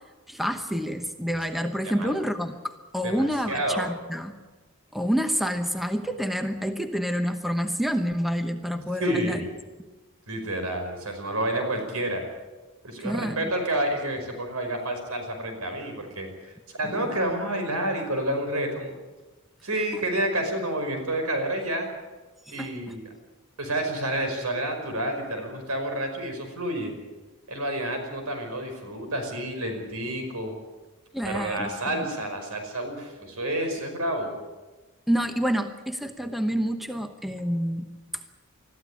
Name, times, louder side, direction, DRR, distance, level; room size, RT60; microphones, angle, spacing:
voice 1, 0.3-4.4 4.9-9.4 13.0-13.5 16.9-17.0 22.5-22.7 31.1-31.7 32.0-32.1 35.1-37.9, equal, ahead, 7 dB, 1.0 m, -28 dB
voice 2, 3.0-3.9 9.0-9.5 10.3-12.2 12.8-19.0 19.6-21.9 22.5-23.1 23.6-26.9 27.5-30.5 31.2-34.3, right 1 dB, 80° right, 5 dB, 5.4 m, -29 dB
21.5 x 14.5 x 10.0 m, 1.2 s
head